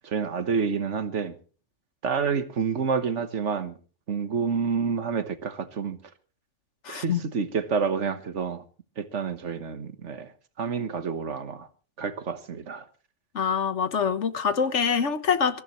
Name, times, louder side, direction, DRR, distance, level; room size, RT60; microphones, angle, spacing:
voice 1, 0.0-1.4 2.0-3.7 4.1-6.0 6.9-8.6 9.0-10.3 10.6-11.7 12.0-12.8, right 5 dB, 85° right, 1.6 m, -28 dB
voice 2, 6.8-7.2 13.3-15.6, left 6 dB, 85° left, 1.5 m, -25 dB
23.0 x 15.0 x 3.2 m
omnidirectional pair, 1.2 m